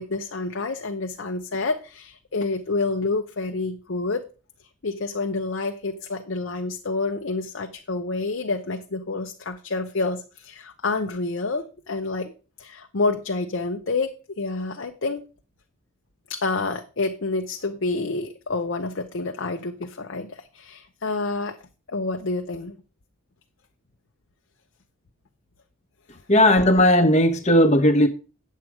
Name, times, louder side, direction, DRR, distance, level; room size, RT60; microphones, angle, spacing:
voice 1, 0.0-4.2 4.8-12.3 12.6-15.2 16.3-21.6 21.9-22.8, left 3 dB, 60° left, 0.7 m, -28 dB
voice 2, 26.3-28.1, left 1 dB, 30° left, 1.0 m, -16 dB
9.0 x 7.4 x 4.8 m
head